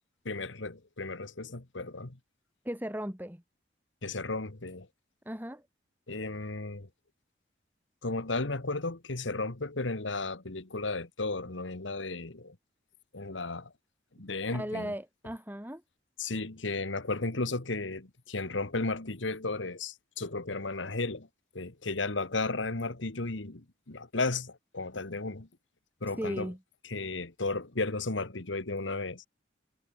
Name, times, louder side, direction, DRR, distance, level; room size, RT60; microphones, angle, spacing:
voice 1, 0.3-2.2 4.0-4.9 6.1-6.9 8.0-12.6 13.1-13.7 14.2-14.9 16.2-21.3 21.5-25.5 26.0-26.5 26.8-29.2, left 3 dB, 90° left, 1.8 m, -34 dB
voice 2, 2.6-3.4 5.3-5.6 14.5-15.8 26.2-26.6, equal, 10° right, 2.5 m, -36 dB
head